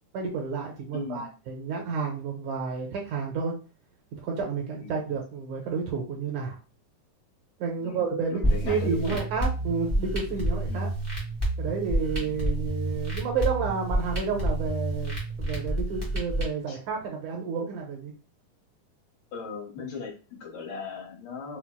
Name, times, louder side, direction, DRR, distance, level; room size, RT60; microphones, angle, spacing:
voice 1, 0.1-3.5 4.1-6.6 7.6-10.9 11.6-15.1 15.4-18.1, right 5 dB, 75° right, 1 dB, 1.9 m, -31 dB
voice 2, 0.9-1.3 4.8-5.0 7.8-9.2 10.7-10.9 16.7-16.8 19.3-21.6, left 5 dB, 75° left, -2 dB, 2.5 m, -38 dB
sound 1, 8.4-16.4, right 1 dB, 20° right, 0.6 m, -29 dB
5.8 x 2.0 x 2.2 m, 0.35 s
omnidirectional pair, 3.8 m